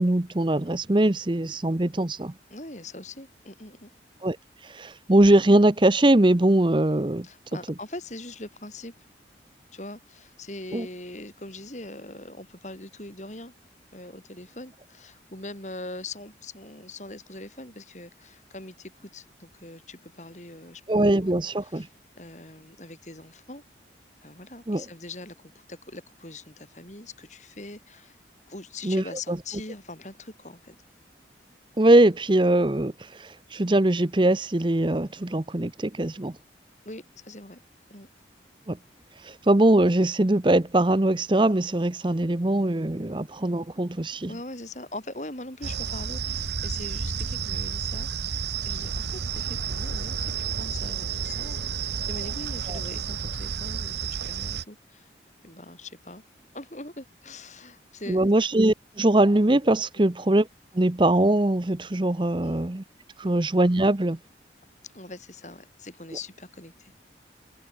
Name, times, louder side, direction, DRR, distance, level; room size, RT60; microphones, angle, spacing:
voice 1, 0.0-2.3 4.2-4.4 4.6-7.3 10.7-10.9 20.9-21.9 24.7-24.8 28.8-29.4 31.8-36.3 38.7-38.8 39.2-44.3 52.7-52.8 58.1-60.5 60.7-62.8 63.2-64.2, right 1 dB, 25° right, 0.8 m, -22 dB
voice 2, 2.5-3.9 7.2-9.1 9.7-13.5 13.9-21.0 21.6-21.9 22.2-23.6 24.2-28.2 28.5-30.8 36.9-37.6 37.9-38.1 44.3-55.1 55.4-56.2 56.5-58.3 60.0-60.1 62.4-62.6 64.8-66.9, left 2 dB, 40° left, 5.6 m, -42 dB
sound 1, 45.6-54.6, right 6 dB, 70° right, 1.1 m, -31 dB
head